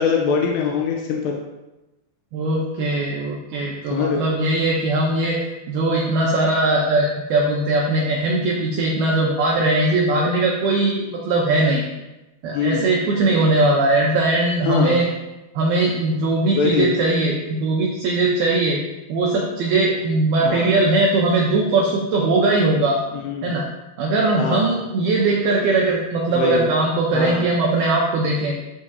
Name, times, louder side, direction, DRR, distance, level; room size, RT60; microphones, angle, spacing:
voice 1, 0.0-1.4 3.9-4.2 12.5-12.8 14.7-15.1 16.5-16.9 20.4-20.7 23.1-23.5 24.4-24.7 26.3-26.7 27.1-27.4, left 6 dB, 80° left, 0 dB, 2.5 m, -22 dB
voice 2, 2.3-5.4 5.7-11.8 12.4-15.1 15.6-18.8 19.1-23.0 23.4-23.7 24.0-28.5, right 2 dB, 90° right, -2 dB, 2.2 m, -20 dB
13.5 x 5.6 x 2.8 m, 1.0 s
omnidirectional pair, 5.7 m